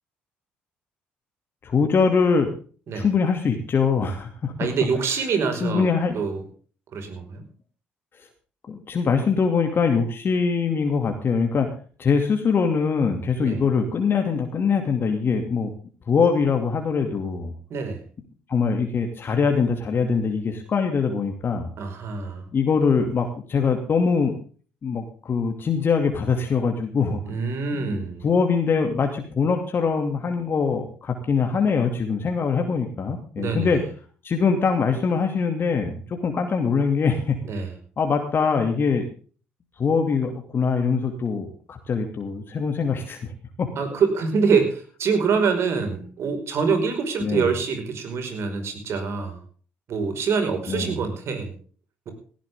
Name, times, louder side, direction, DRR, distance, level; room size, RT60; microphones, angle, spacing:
voice 1, 1.6-2.5 2.9-4.5 5.6-6.2 8.7-11.7 12.0-15.7 16.1-17.5 18.5-21.7 22.5-24.3 24.8-27.2 27.7-33.8 34.2-37.4 38.0-39.1 39.8-43.2 43.6-43.7 47.2-47.5 50.7-50.9, left 5 dB, 45° left, 4 dB, 2.6 m, -23 dB
voice 2, 4.6-5.9 6.1-6.4 6.9-7.4 13.4-13.6 17.7-18.0 21.8-22.5 27.2-28.3 33.4-33.8 37.4-37.8 43.8-49.4 49.9-51.5 52.0-52.1, right 5 dB, 60° right, 7 dB, 5.2 m, -25 dB
17.0 x 14.5 x 3.7 m, 0.41 s
hypercardioid pair, 55°, 5 cm